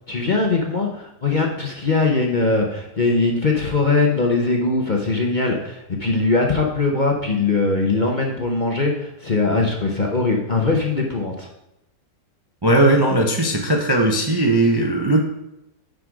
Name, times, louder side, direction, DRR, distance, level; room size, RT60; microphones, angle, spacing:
voice 1, 0.1-11.5, left 3 dB, 35° left, 1 dB, 0.8 m, -21 dB
voice 2, 12.6-15.2, right 1 dB, 25° right, 1 dB, 0.6 m, -18 dB
10.0 x 5.2 x 4.8 m, 0.89 s
omnidirectional pair, 1.8 m